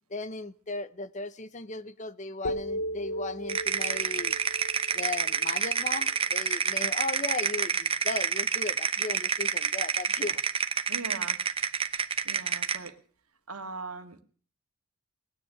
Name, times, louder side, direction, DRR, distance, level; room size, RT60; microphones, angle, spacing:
voice 1, 0.1-4.4 4.9-10.4, left 3 dB, 35° left, 0.7 m, -36 dB
sound 1, 2.4-6.5, equal, 70° left, 1.0 m, -37 dB
sound 2, 3.5-12.9, right 6 dB, 25° right, 0.9 m, -28 dB
voice 2, 10.9-11.4 12.3-13.0 13.5-14.2, right 4 dB, 80° right, 1.9 m, -40 dB
19.0 x 10.0 x 6.6 m
head